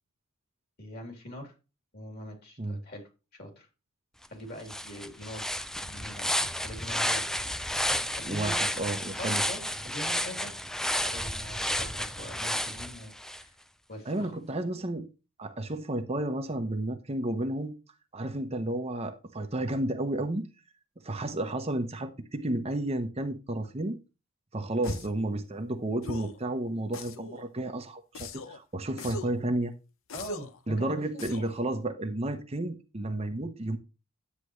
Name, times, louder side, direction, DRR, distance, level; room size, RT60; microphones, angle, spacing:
voice 1, 0.8-1.5 1.9-3.7 4.3-5.4 5.8-8.7 9.2-10.5 11.0-13.5 13.9-14.3 30.1-31.3, equal, 50° left, 3.1 m, -43 dB
sound 1, 4.2-4.3 4.7-13.4, left 1 dB, ahead, 0.3 m, -31 dB
voice 2, 8.2-9.4 14.1-15.1 15.4-17.7 18.1-20.5 21.0-24.0 24.5-29.7 30.7-33.8, right 1 dB, 30° right, 0.8 m, -32 dB
sound 2, 24.8-25.2 26.0-26.4 26.9-27.4 28.1-28.6 29.0-29.4 30.1-30.6 31.2-31.6, left 3 dB, 75° left, 0.8 m, -40 dB
9.9 x 8.3 x 3.1 m
head